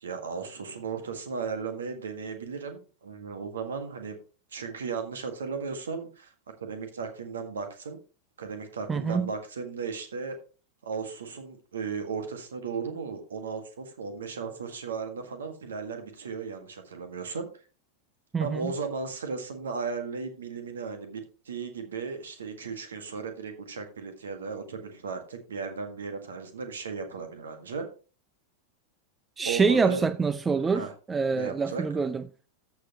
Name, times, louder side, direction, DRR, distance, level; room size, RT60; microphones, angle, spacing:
voice 1, 0.0-4.2 4.5-6.3 6.6-8.0 8.4-10.4 10.8-17.5 18.4-27.9 29.4-30.0 30.7-30.9 31.3-31.8, right 5 dB, 65° right, 1.8 m, -35 dB
voice 2, 8.9-9.3 18.3-18.7 29.4-32.2, right 5 dB, 15° right, 0.5 m, -26 dB
14.0 x 6.1 x 3.0 m
figure-of-eight pair, 90°, 0 cm